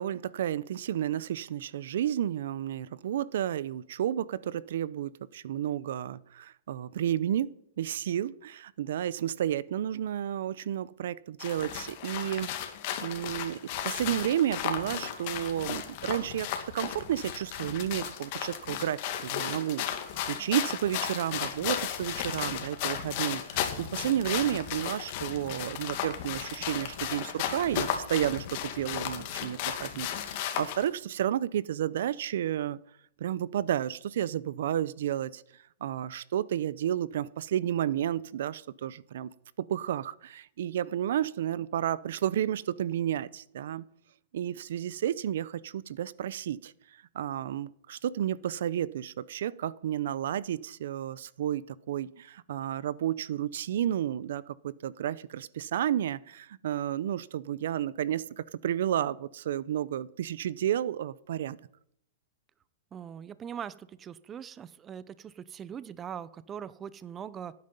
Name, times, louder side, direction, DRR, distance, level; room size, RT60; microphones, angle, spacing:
voice 1, 0.0-12.5 13.0-13.6 13.8-32.8 33.2-35.4 35.8-39.3 39.6-43.8 44.3-46.7 47.1-61.6, right 11 dB, 70° right, 21 dB, 0.5 m, -31 dB
sound 1, 11.4-30.9, left 10 dB, 45° left, 2.0 m, -35 dB
voice 2, 62.9-67.6, right 8 dB, 20° right, 17 dB, 0.5 m, -41 dB
17.5 x 9.4 x 5.3 m, 0.71 s
hypercardioid pair, 150°, 0 cm